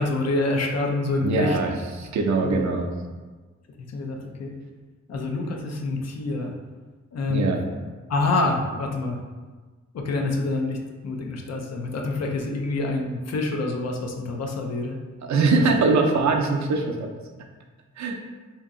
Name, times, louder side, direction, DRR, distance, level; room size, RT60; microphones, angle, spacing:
voice 1, 0.0-1.6 2.4-2.7 3.9-4.5 5.1-6.6 7.1-7.6 8.1-9.2 9.9-15.6, left 2 dB, 60° left, 2 dB, 0.5 m, -27 dB
voice 2, 1.2-2.9 7.3-7.6 15.2-17.1 18.0-18.2, right 3 dB, 70° right, 2 dB, 0.5 m, -22 dB
2.8 x 2.7 x 3.6 m, 1.3 s
wide cardioid pair, 125°, 30 cm